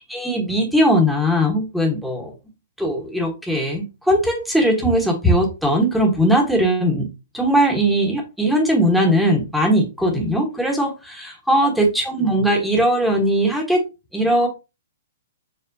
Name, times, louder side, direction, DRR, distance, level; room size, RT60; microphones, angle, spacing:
voice 1, 0.1-2.3 2.8-7.1 7.3-13.8 14.1-14.5, equal, ahead, 2 dB, 1.2 m, -19 dB
6.8 x 2.4 x 2.7 m, 0.27 s
hypercardioid pair, 140°, 0 cm